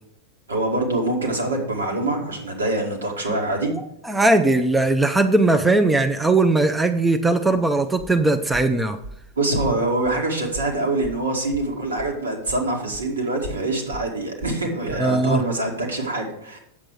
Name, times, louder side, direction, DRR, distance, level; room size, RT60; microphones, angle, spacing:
voice 1, 0.5-3.7 9.4-16.6, right 2 dB, 70° right, 0 dB, 2.1 m, -24 dB
voice 2, 3.7-9.0 15.0-15.4, right 2 dB, 10° right, 7 dB, 0.6 m, -19 dB
Walk footsteps, 7.4-12.2 12.4-15.1, right 1 dB, 55° right, 1.3 m, -39 dB
8.4 x 7.5 x 4.7 m, 0.77 s
figure-of-eight pair, 90°, 0 cm